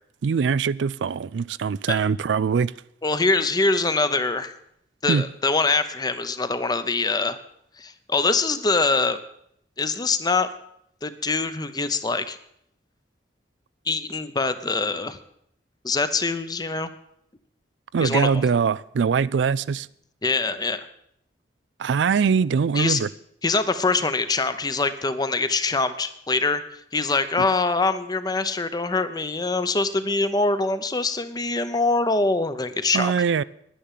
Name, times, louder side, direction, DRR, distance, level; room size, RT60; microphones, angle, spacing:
voice 1, 0.2-2.7 5.1-5.2 17.9-19.9 21.8-23.1 32.9-33.4, right 6 dB, 85° right, 0.4 m, -22 dB
voice 2, 3.0-4.5 5.0-7.4 7.8-9.2 9.8-10.5 11.0-12.4 13.9-15.2 15.8-16.9 18.0-18.4 20.2-20.9 22.7-23.0 23.4-33.1, left 3 dB, 20° left, 0.8 m, -24 dB
10.0 x 10.0 x 7.5 m
head